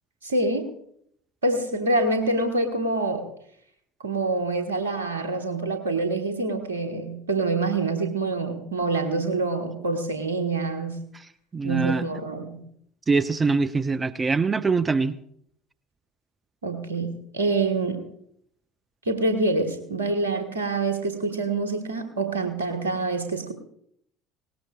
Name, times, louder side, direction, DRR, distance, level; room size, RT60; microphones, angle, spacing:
voice 1, 0.2-0.7 1.4-3.3 4.0-11.0 11.6-12.6 16.6-18.0 19.0-23.5, right 2 dB, 80° right, 6 dB, 1.5 m, -26 dB
voice 2, 11.5-12.0 13.1-15.2, right 4 dB, 25° right, 13 dB, 0.5 m, -23 dB
20.0 x 18.5 x 2.4 m, 0.71 s
figure-of-eight pair, 60°, 0 cm